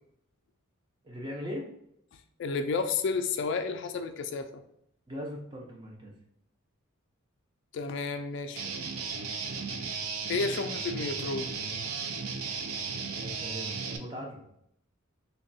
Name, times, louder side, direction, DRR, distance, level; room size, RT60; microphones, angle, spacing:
voice 1, 1.0-1.7 5.1-6.1 13.1-14.5, equal, 20° right, 0 dB, 0.6 m, -39 dB
voice 2, 2.4-4.6 7.7-8.7 10.3-11.5, left 4 dB, 55° left, 8 dB, 0.3 m, -31 dB
Guitar, 8.6-14.0, right 5 dB, 80° right, 0.4 m, -35 dB
3.6 x 2.2 x 4.0 m, 0.73 s
head